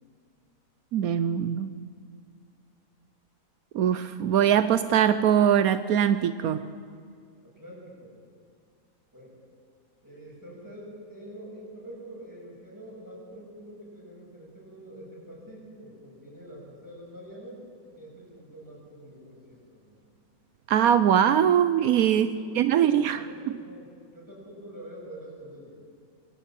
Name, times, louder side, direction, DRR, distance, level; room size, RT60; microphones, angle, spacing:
voice 1, 0.9-1.7 3.7-6.7 20.7-23.2, right 9 dB, 80° right, 12 dB, 1.1 m, -22 dB
voice 2, 7.4-8.1 9.1-9.4 10.0-17.6 17.9-20.0 22.2-23.9 24.1-25.8, right 1 dB, 10° right, -5 dB, 7.6 m, -46 dB
22.5 x 14.0 x 9.0 m, 2.3 s
omnidirectional pair, 1.5 m